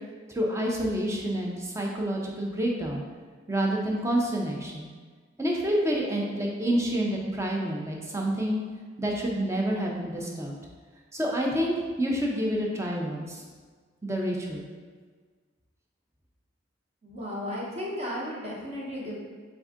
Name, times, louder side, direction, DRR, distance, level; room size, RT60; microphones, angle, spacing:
voice 1, 0.3-3.0 3.5-4.9 5.4-8.6 9.0-10.5 11.1-13.4 14.0-14.6, right 1 dB, 15° right, -1 dB, 0.5 m, -28 dB
voice 2, 17.0-19.2, left 1 dB, 30° right, -4 dB, 0.9 m, -34 dB
3.8 x 3.6 x 3.6 m, 1.5 s
head